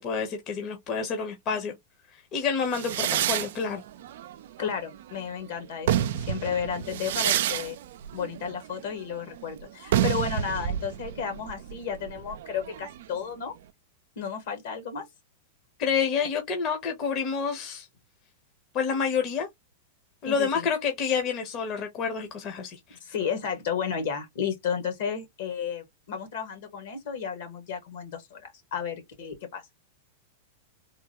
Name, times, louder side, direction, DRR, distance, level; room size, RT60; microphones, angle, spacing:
voice 1, 0.0-1.7 2.3-3.8 15.8-17.9 18.7-19.5 20.2-22.8, left 6 dB, 40° left, 0.9 m, -28 dB
sound 1, 2.7-5.2 5.6-13.2, right 11 dB, 70° right, 0.4 m, -29 dB
voice 2, 4.6-7.8 8.1-13.5 14.1-15.0 20.2-20.7 22.9-29.6, left 7 dB, 70° left, 1.6 m, -33 dB
3.6 x 2.2 x 2.9 m
hypercardioid pair, 115°, 0 cm